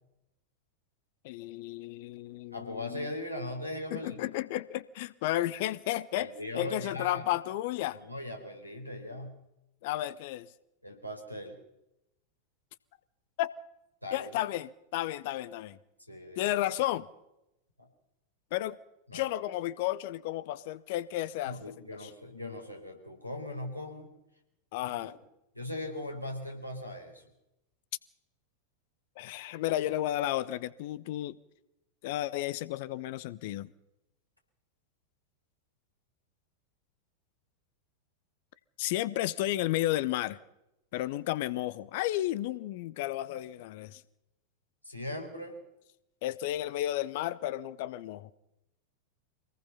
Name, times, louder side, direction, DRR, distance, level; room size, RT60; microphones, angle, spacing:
voice 1, 1.2-3.1 3.9-6.3 6.5-8.0 9.8-10.5 13.4-13.5 14.1-15.8 16.4-17.1 18.5-18.8 19.1-21.6 22.0-22.1 24.7-25.2 29.2-31.4 32.0-33.7 38.8-40.4 40.9-44.0 46.2-48.3, left 14 dB, 50° left, 0.9 m, -32 dB
voice 2, 2.5-4.2 6.2-7.2 7.9-9.4 10.8-11.6 14.0-14.3 16.1-16.5 17.8-17.9 19.1-19.2 21.5-24.1 24.8-25.1 25.5-27.3 44.8-45.6, left 1 dB, 90° right, 4.2 m, -39 dB
25.0 x 18.5 x 5.6 m
figure-of-eight pair, 90°, 0 cm